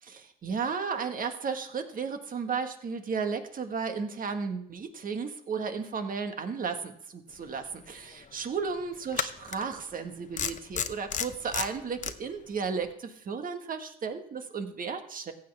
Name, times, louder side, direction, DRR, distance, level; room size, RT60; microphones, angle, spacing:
voice 1, 0.0-15.3, right 5 dB, 45° right, 6 dB, 1.6 m, -34 dB
sound 1, 7.7-7.8 9.1-9.6 10.4-12.1, left 7 dB, 40° left, 0.8 m, -31 dB
15.0 x 8.4 x 3.5 m, 0.68 s
supercardioid pair, 75°, 20 cm